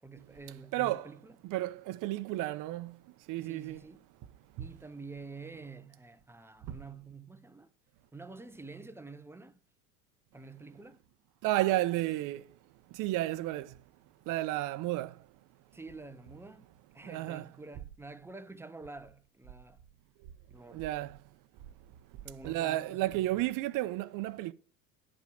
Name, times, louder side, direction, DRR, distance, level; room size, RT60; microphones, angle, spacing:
voice 1, 0.0-1.4 3.4-4.0 4.6-7.7 8.1-9.6 10.3-11.0 15.7-16.7 16.9-19.8 20.5-20.9 22.2-23.4, right 3 dB, 5° right, 0.5 m, -48 dB
voice 2, 0.7-1.1 1.4-2.9 3.3-3.8 4.6-4.7 6.7-6.8 11.4-12.4 12.9-13.7 14.3-15.1 17.0-17.5 20.7-21.2 22.4-24.5, right 16 dB, 45° right, 0.7 m, -32 dB
11.0 x 5.3 x 5.1 m
hypercardioid pair, 90°, 44 cm